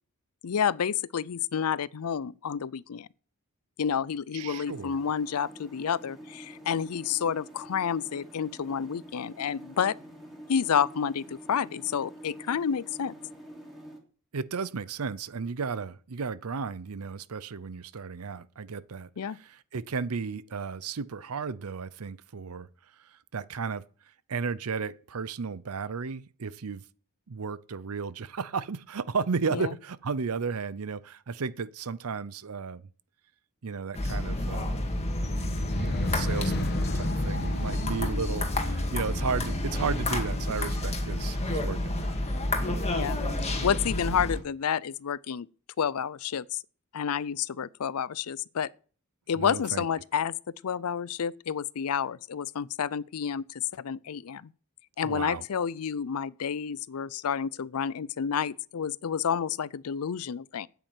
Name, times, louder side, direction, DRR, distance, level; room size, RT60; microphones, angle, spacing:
voice 1, 0.4-3.1 3.8-10.0 10.5-13.1 19.2-19.4 29.5-29.7 42.9-45.5 45.8-46.6 46.9-48.7 49.3-50.4 50.6-54.5 55.0-60.7, left 7 dB, 75° left, 0.5 m, -30 dB
voice 2, 4.3-5.0 14.3-22.7 23.0-23.8 24.3-26.8 27.3-32.9 33.6-34.9 35.7-42.1 49.4-49.8 55.0-55.4, right 5 dB, 75° right, 0.7 m, -34 dB
sound 1, 4.4-14.0, right 1 dB, ahead, 3.1 m, -47 dB
sound 2, 33.9-44.4, left 1 dB, 30° left, 2.0 m, -30 dB
sound 3, 34.5-40.8, left 2 dB, 45° left, 1.3 m, -34 dB
9.2 x 8.8 x 9.1 m
head